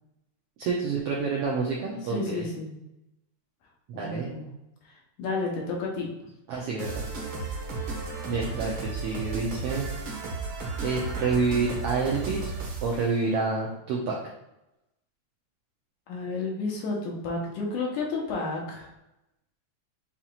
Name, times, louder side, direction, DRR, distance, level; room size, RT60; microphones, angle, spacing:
voice 1, 0.6-2.4 4.0-4.3 6.5-7.0 8.3-9.9 10.8-12.5 12.8-14.2, right 4 dB, 80° right, -2 dB, 1.3 m, -28 dB
voice 2, 2.1-2.8 3.9-4.5 5.2-6.1 16.1-18.9, left 3 dB, 85° left, -2 dB, 2.5 m, -31 dB
sound 1, 6.8-13.1, right 4 dB, 65° right, 1.2 m, -34 dB
7.1 x 2.9 x 2.4 m, 0.91 s
omnidirectional pair, 3.5 m